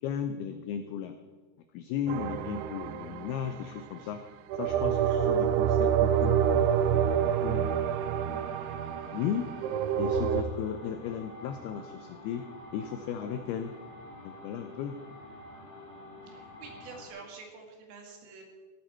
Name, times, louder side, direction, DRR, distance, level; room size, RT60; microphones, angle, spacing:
voice 1, 0.0-1.2 1.7-4.2 4.6-6.7 7.4-7.8 8.3-8.5 9.1-9.5 10.0-12.5 12.7-13.7 14.2-15.0, left 8 dB, 85° left, 8 dB, 2.2 m, -35 dB
sound 1, 2.1-3.8 4.5-10.4, right 8 dB, 85° right, 3.0 m, -27 dB
sound 2, 6.1-17.1, left 2 dB, 45° left, 4.8 m, -48 dB
voice 2, 16.3-18.4, right 4 dB, 70° right, 2 dB, 4.3 m, -47 dB
15.0 x 13.0 x 4.4 m, 1.4 s
omnidirectional pair, 5.4 m